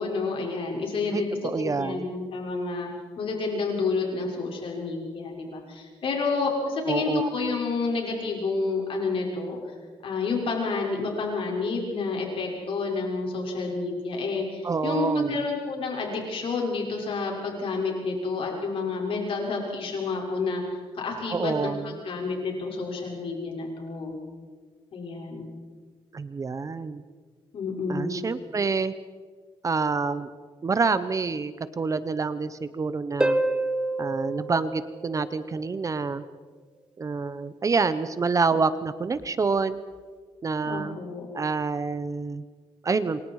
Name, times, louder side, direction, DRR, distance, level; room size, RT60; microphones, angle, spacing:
voice 1, 0.0-2.9 3.2-9.6 10.0-24.1 24.9-25.4 27.5-28.2 40.6-41.3, left 3 dB, 60° left, -1 dB, 6.4 m, -29 dB
voice 2, 1.1-2.1 6.9-7.3 14.6-15.4 21.3-22.0 26.1-27.0 27.9-28.9 29.6-30.3 30.6-33.4 34.0-36.2 37.0-39.8 40.4-41.0 41.3-42.4 42.8-43.2, right 4 dB, 30° right, 13 dB, 0.9 m, -27 dB
Harp, 33.2-35.7 39.2-39.3, right 1 dB, 10° right, 1.5 m, -28 dB
28.0 x 24.5 x 4.9 m, 1.5 s
cardioid pair, 115°, 10 cm